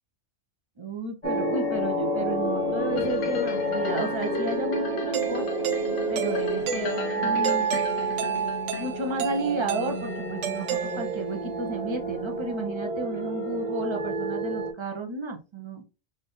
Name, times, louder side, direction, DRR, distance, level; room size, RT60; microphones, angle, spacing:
voice 1, 0.8-5.8 6.1-7.7 8.8-15.8, right 2 dB, 30° right, 2 dB, 0.6 m, -33 dB
sound 1, 1.2-14.7, right 1 dB, 30° left, 0.9 m, -29 dB
sound 2, 3.0-9.2 9.7-9.8, left 4 dB, 75° left, 1.0 m, -36 dB
Doorbell, 5.1-11.5, right 9 dB, 75° right, 0.9 m, -33 dB
3.9 x 2.6 x 3.5 m, 0.31 s
omnidirectional pair, 1.3 m